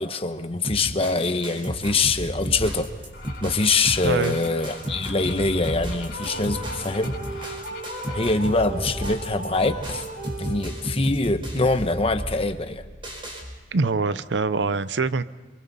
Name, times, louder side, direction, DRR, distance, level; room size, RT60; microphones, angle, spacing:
voice 1, 0.0-2.9 3.4-7.1 8.1-10.1 10.4-12.8, left 3 dB, 30° left, 8 dB, 1.2 m, -24 dB
sound 1, 0.6-13.4, equal, 30° right, 4.9 m, -34 dB
sound 2, 3.1-8.3, left 4 dB, 60° left, 3.3 m, -43 dB
voice 2, 4.0-4.4 13.7-15.2, right 4 dB, 70° right, 15 dB, 0.7 m, -24 dB
sound 3, 6.1-11.0, right 2 dB, 55° right, 6.6 m, -36 dB
28.5 x 24.5 x 4.2 m, 1.3 s
head